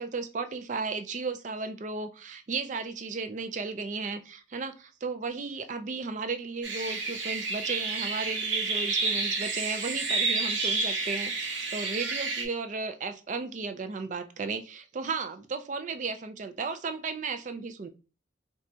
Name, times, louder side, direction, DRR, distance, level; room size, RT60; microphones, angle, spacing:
voice 1, 0.0-17.9, right 4 dB, 40° right, 9 dB, 0.4 m, -34 dB
sound 1, 6.6-12.5, right 3 dB, 85° right, 0.8 m, -30 dB
4.2 x 2.3 x 2.6 m, 0.33 s
head